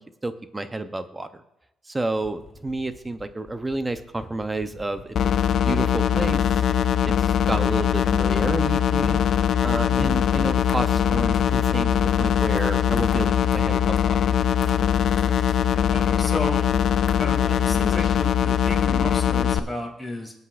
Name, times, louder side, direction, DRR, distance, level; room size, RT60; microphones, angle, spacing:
voice 1, 0.2-1.3 1.9-5.3 5.6-6.6 7.0-9.2 9.6-14.2, right 2 dB, 15° right, 10 dB, 0.7 m, -30 dB
sound 1, 2.1-10.2 10.9-15.5, left 2 dB, 25° left, 2.8 m, -46 dB
sound 2, 5.2-19.6, left 9 dB, 65° left, 0.5 m, -21 dB
sound 3, 8.5-19.0, left 5 dB, 45° left, 0.9 m, -43 dB
voice 2, 15.9-16.6 17.2-20.3, left 1 dB, ahead, -2 dB, 3.2 m, -33 dB
20.0 x 8.0 x 2.5 m, 0.87 s
cardioid pair, 90°, 0 cm